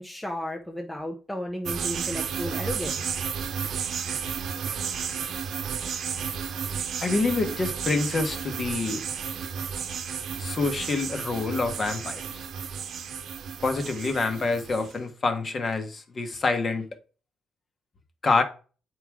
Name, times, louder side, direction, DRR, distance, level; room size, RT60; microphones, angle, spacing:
voice 1, 0.0-3.0, left 1 dB, 5° left, 0.7 m, -33 dB
sound 1, 1.7-14.9, right 7 dB, 60° right, 0.9 m, -32 dB
voice 2, 7.0-9.0 10.4-12.2 13.6-16.9 18.2-18.4, left 3 dB, 30° left, 1.1 m, -26 dB
8.8 x 4.7 x 3.6 m
cardioid pair, 150°, 0 cm